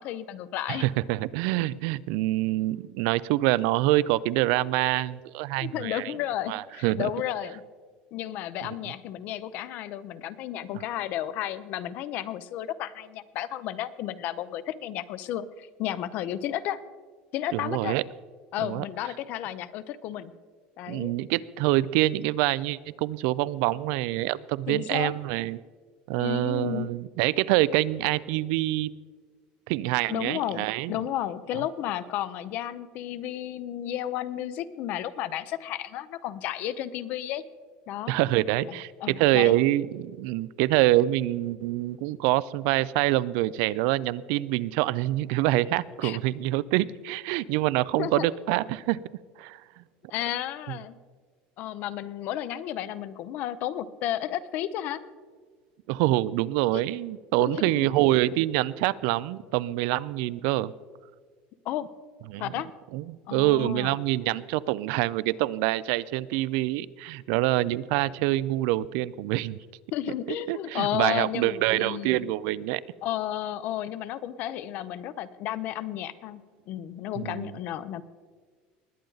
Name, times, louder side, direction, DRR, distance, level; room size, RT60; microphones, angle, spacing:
voice 1, 0.0-0.9 5.6-7.6 8.1-16.8 17.3-18.0 18.5-20.3 20.8-21.1 24.7-25.1 26.2-26.9 30.1-37.4 37.9-38.1 38.6-39.5 46.0-46.2 48.0-48.3 50.1-51.0 51.6-55.0 56.7-56.8 57.4-57.7 61.6-61.9 62.4-62.7 63.3-64.0 69.9-72.3 73.0-76.4 76.7-78.0, left 12 dB, 45° left, 15 dB, 0.6 m, -32 dB
voice 2, 0.7-6.1 6.5-7.1 17.5-18.0 18.6-18.8 20.9-25.6 26.1-28.9 29.7-31.0 38.1-49.0 49.4-49.8 50.7-50.8 55.9-60.7 62.3-62.5 62.9-69.6 70.5-72.8 77.2-77.5, right 16 dB, 65° right, 19 dB, 0.4 m, -26 dB
20.5 x 9.0 x 3.9 m, 1.5 s
cardioid pair, 170°, 4 cm